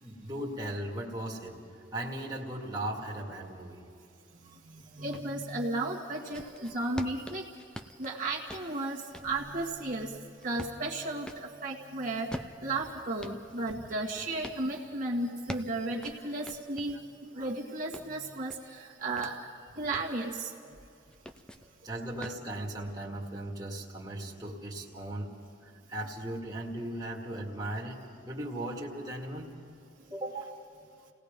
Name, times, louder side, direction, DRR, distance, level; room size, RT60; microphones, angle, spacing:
voice 1, 0.0-1.6 1.9-3.8 13.7-13.9 15.1-15.2 17.4-17.5 21.8-25.3 25.6-29.6 30.1-30.4, right 1 dB, 20° right, -3 dB, 2.1 m, -38 dB
voice 2, 4.7-7.4 8.0-10.2 10.4-12.3 12.6-17.0 17.2-19.4 19.8-20.5 30.3-30.4, right 2 dB, 45° right, -3 dB, 1.9 m, -34 dB
sound 1, 5.1-5.3 5.9-11.5 12.1-14.6 15.2-17.0 17.5-19.3 19.7-20.2 21.1-21.7 22.2-22.5, equal, 5° left, 0.6 m, -45 dB
30.0 x 18.5 x 5.2 m, 2.5 s
head